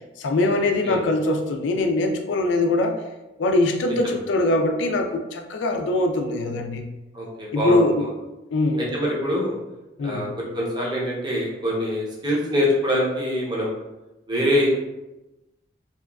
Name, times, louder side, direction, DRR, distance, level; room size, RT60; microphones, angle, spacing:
voice 1, 0.2-3.0 3.4-6.9 7.5-8.1 8.5-8.9 10.0-10.3, left 2 dB, 85° left, 4 dB, 0.4 m, -22 dB
voice 2, 7.1-7.8 8.8-9.6 10.0-13.7 14.3-14.7, equal, 25° right, -4 dB, 0.6 m, -24 dB
2.8 x 2.3 x 2.3 m, 1.0 s
head